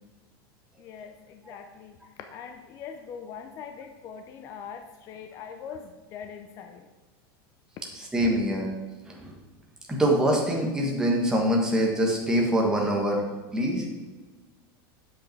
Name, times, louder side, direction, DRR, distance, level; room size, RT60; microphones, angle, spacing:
voice 1, 0.8-2.0 2.3-6.9, left 7 dB, 25° left, 5 dB, 0.5 m, -42 dB
voice 2, 8.0-8.7 9.1-9.3 9.9-13.2 13.5-13.9, equal, 5° right, -1 dB, 1.3 m, -24 dB
8.6 x 7.6 x 4.6 m, 1.3 s
supercardioid pair, 175°, 13 cm